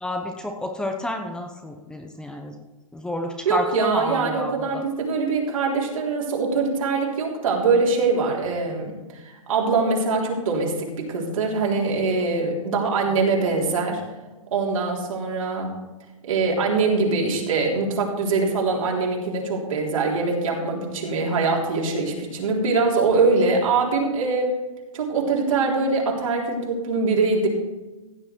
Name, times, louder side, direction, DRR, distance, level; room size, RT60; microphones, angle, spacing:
voice 1, 0.0-2.6 2.9-4.8 13.1-13.2, left 1 dB, 5° left, 3 dB, 0.8 m, -30 dB
voice 2, 3.5-14.0 14.5-15.8 16.2-24.6 24.9-27.5, right 4 dB, 70° right, -1 dB, 3.6 m, -23 dB
15.5 x 7.6 x 4.5 m, 1.2 s
hypercardioid pair, 140°, 18 cm